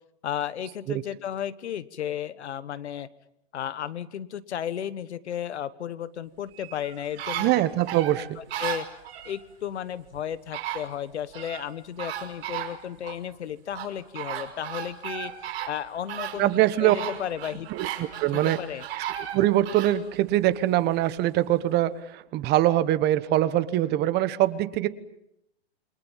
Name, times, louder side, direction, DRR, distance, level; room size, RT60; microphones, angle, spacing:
voice 1, 0.2-3.1 3.5-7.5 8.4-8.9 9.2-15.3 15.7-17.7 18.3-18.9, left 9 dB, 80° left, 16 dB, 1.4 m, -34 dB
sound 1, 6.5-9.4 10.2-10.3 10.5-11.7 12.0-13.2 13.7-20.0 20.5-20.6, right 11 dB, 55° right, 5.6 m, -35 dB
voice 2, 7.4-8.4 16.4-16.9 17.7-18.6 19.0-19.1 19.3-24.9, right 14 dB, 30° right, 14 dB, 1.3 m, -23 dB
28.5 x 24.0 x 7.4 m, 0.80 s
hypercardioid pair, 130°, 33 cm